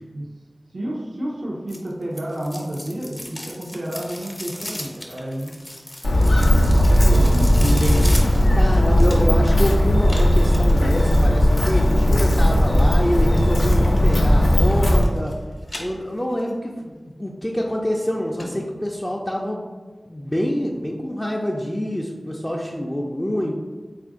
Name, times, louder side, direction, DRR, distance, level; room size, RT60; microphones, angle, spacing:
voice 1, 0.7-5.6 6.7-7.8, right 1 dB, 90° right, -4 dB, 0.5 m, -30 dB
sound 1, 1.7-9.5 10.0-11.8 13.7-14.2 14.5-15.3 15.6-16.5 16.9-17.0 17.6-17.7 18.0-18.1 18.4-18.5 18.9-19.0, left 1 dB, 55° left, 0.7 m, -36 dB
Walk footsteps, 6.0-15.0, equal, 90° left, 0.6 m, -16 dB
voice 2, 7.6-15.3 15.8-19.6 20.1-23.5, equal, 20° left, -1 dB, 0.3 m, -26 dB
3.7 x 2.4 x 3.6 m, 1.4 s
wide cardioid pair, 50°, 0 cm